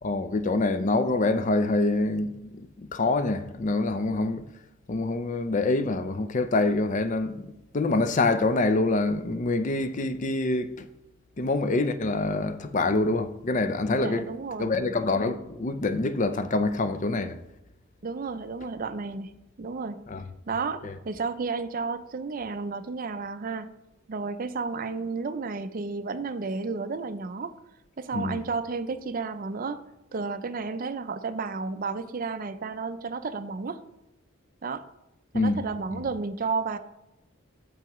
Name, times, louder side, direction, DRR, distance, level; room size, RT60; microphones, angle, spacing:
voice 1, 0.0-4.5 4.9-10.9 11.4-14.3 14.6-17.4 20.1-20.2 20.8-20.9 28.1-28.4 35.3-35.6 35.9-36.1, left 2 dB, 35° left, 0.5 m, -26 dB
voice 2, 14.0-14.7 18.0-20.0 20.5-20.8 21.1-23.7 24.1-27.5 28.0-29.8 30.1-33.8 34.6-34.9 35.3-36.8, right 4 dB, 40° right, 0.4 m, -32 dB
13.5 x 4.7 x 3.1 m
head